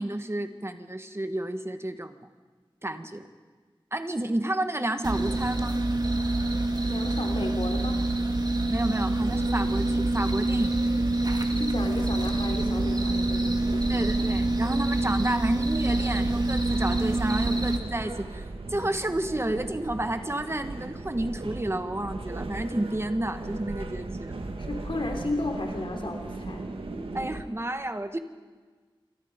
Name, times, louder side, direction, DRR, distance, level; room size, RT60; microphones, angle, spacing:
voice 1, 0.0-2.2 2.8-3.3 3.9-5.8 8.7-10.8 13.9-24.4 27.1-28.2, right 1 dB, 30° right, 8 dB, 1.6 m, -31 dB
sound 1, 5.0-17.8, right 2 dB, 45° right, 2.2 m, -26 dB
voice 2, 6.8-8.1 11.5-14.1 24.6-26.7, left 2 dB, 70° left, 3 dB, 3.2 m, -34 dB
sound 2, 9.1-27.4, right 2 dB, 85° right, 2.1 m, -38 dB
28.0 x 25.5 x 5.3 m, 1.4 s
wide cardioid pair, 70°, 9 cm